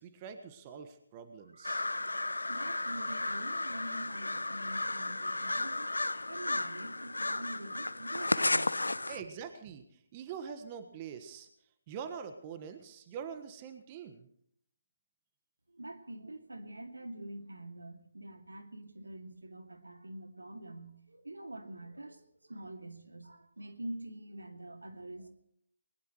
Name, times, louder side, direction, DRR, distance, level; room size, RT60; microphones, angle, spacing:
voice 1, 0.0-1.8 9.1-11.5 11.9-14.3, right 7 dB, 30° right, 9 dB, 1.5 m, -44 dB
sound 1, 1.6-9.2, left 2 dB, 85° left, 0.8 m, -34 dB
voice 2, 2.5-5.9 6.3-8.8 15.7-25.3, right 1 dB, 85° right, 6 dB, 2.4 m, -45 dB
21.0 x 20.5 x 3.2 m, 0.68 s
figure-of-eight pair, 145°, 0 cm